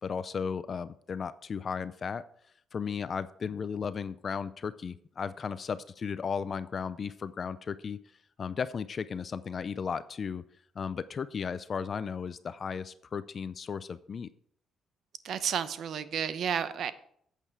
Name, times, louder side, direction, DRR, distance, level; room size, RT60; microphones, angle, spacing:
voice 1, 0.0-2.2 2.7-8.0 8.4-10.4 10.8-14.3, left 6 dB, 45° left, 15 dB, 0.4 m, -35 dB
voice 2, 15.2-16.9, right 8 dB, 65° right, 13 dB, 0.7 m, -31 dB
8.8 x 8.4 x 4.7 m, 0.65 s
cardioid pair, 90°, 0 cm